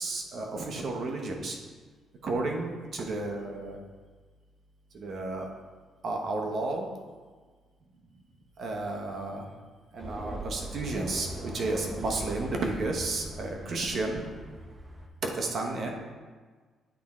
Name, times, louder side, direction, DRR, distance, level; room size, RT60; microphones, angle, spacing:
voice 1, 0.0-1.6 2.2-3.8 4.9-5.5 6.0-6.9 8.6-9.5 9.9-14.3 15.2-15.9, right 2 dB, 55° right, 1 dB, 1.1 m, -32 dB
sound 1, 10.0-15.1, right 1 dB, 20° right, 0.7 m, -41 dB
8.6 x 3.6 x 4.3 m, 1.4 s
cardioid pair, 90°, 0 cm